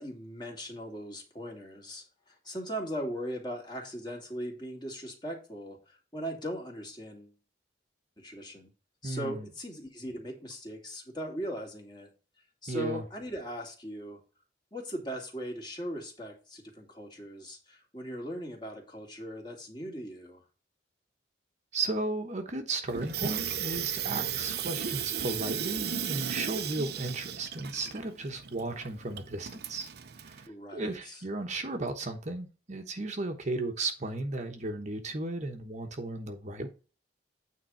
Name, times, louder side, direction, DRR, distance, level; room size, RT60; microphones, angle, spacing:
voice 1, 0.0-7.3 8.2-8.7 9.0-12.1 12.6-14.2 14.7-20.4 30.5-31.2, equal, 25° left, 1 dB, 2.3 m, -39 dB
voice 2, 9.0-9.5 12.7-13.0 21.7-29.9 30.2-36.7, right 2 dB, 40° right, 4 dB, 1.1 m, -35 dB
Water tap faucet / Sink (filling or washing), 22.9-30.5, right 8 dB, 60° right, 0.7 m, -35 dB
9.1 x 3.7 x 5.6 m, 0.34 s
head